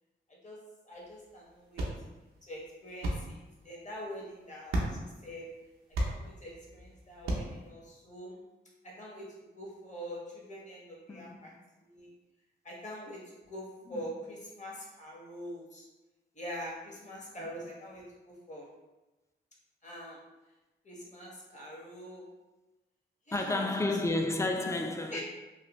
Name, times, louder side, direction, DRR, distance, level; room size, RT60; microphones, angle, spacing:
voice 1, 0.8-1.9 2.5-3.4 3.6-5.5 6.0-8.4 8.8-9.3 9.5-11.5 11.8-12.1 12.6-13.2 13.5-15.8 16.3-18.7 19.8-20.2 20.8-22.2 23.3-23.9 25.1-25.2, equal, 35° left, 1.3 m, -44 dB
sound 1, 0.9-7.7, right 1 dB, 90° right, 0.6 m, -38 dB
voice 2, 11.1-11.6 13.9-14.1 23.3-25.2, left 2 dB, 15° left, 0.5 m, -31 dB
3.1 x 2.3 x 3.0 m
supercardioid pair, 40°, 20 cm